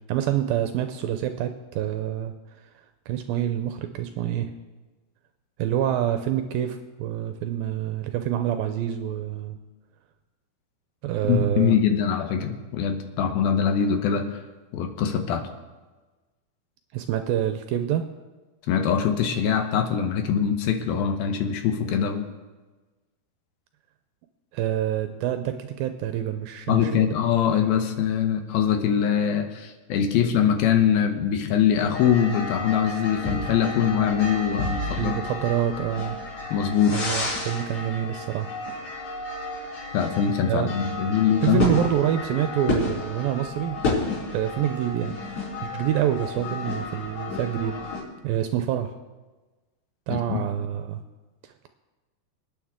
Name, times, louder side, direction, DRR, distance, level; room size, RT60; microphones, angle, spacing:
voice 1, 0.1-2.3 3.1-4.5 5.6-9.6 11.0-11.8 16.9-18.1 24.5-27.1 35.0-36.2 36.9-38.5 38.8-39.0 40.5-40.7 41.4-43.8 44.3-45.2 45.6-47.8 48.2-48.9 50.1-51.0 51.4-51.7, right 11 dB, 80° right, 8 dB, 2.2 m, -26 dB
voice 2, 11.3-14.4 14.7-15.5 18.7-22.3 26.7-35.1 36.5-37.0 39.9-41.6 50.1-50.5, left 8 dB, 75° left, 6 dB, 2.6 m, -23 dB
sound 1, 31.9-48.0, left 2 dB, 50° left, 6.2 m, -31 dB
26.0 x 9.3 x 3.7 m, 1.2 s
omnidirectional pair, 4.6 m